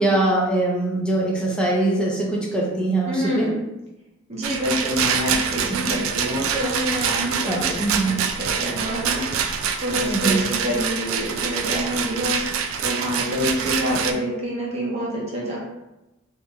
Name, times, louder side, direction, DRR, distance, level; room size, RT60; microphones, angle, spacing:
voice 1, 0.0-3.5 7.5-8.2 10.0-10.4, right 2 dB, 5° left, -4 dB, 0.5 m, -22 dB
voice 2, 3.1-3.6 4.3-9.4 9.8-12.5 12.8-15.6, equal, 35° right, -4 dB, 0.8 m, -27 dB
Rattle, 4.4-14.1, right 7 dB, 90° right, 0.3 m, -25 dB
3.0 x 2.7 x 2.3 m, 0.98 s
head